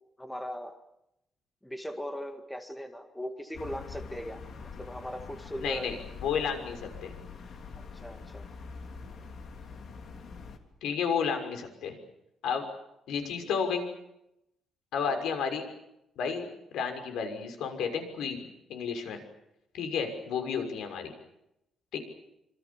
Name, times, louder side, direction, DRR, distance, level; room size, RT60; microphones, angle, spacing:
voice 1, 0.2-0.8 1.6-6.0 7.8-8.5 15.1-15.2 20.4-20.5, equal, 5° left, 6 dB, 1.9 m, -39 dB
sound 1, 3.5-10.6, left 5 dB, 45° left, 3.1 m, -44 dB
voice 2, 5.6-7.1 10.8-12.0 12.4-12.7 13.1-13.8 14.9-15.6 16.2-16.4 16.7-19.2 19.7-21.1 21.9-22.0, left 6 dB, 80° left, 6 dB, 6.1 m, -32 dB
27.0 x 26.5 x 7.2 m, 0.83 s
cardioid pair, 170°, 0 cm